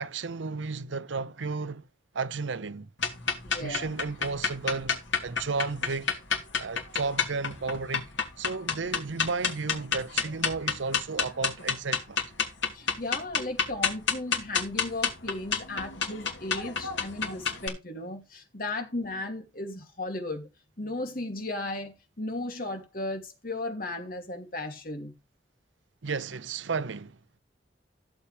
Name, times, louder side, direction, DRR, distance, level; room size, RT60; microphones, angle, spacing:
voice 1, 0.0-1.8 2.1-2.9 3.6-6.2 6.6-8.1 8.4-12.2 26.0-27.4, right 4 dB, 90° right, 0.7 m, -33 dB
sound 1, 3.0-17.7, left 6 dB, 85° left, 3.0 m, -30 dB
voice 2, 3.4-3.9 12.7-20.5 20.8-25.1, left 2 dB, 50° left, 2.8 m, -35 dB
15.5 x 7.3 x 3.4 m
head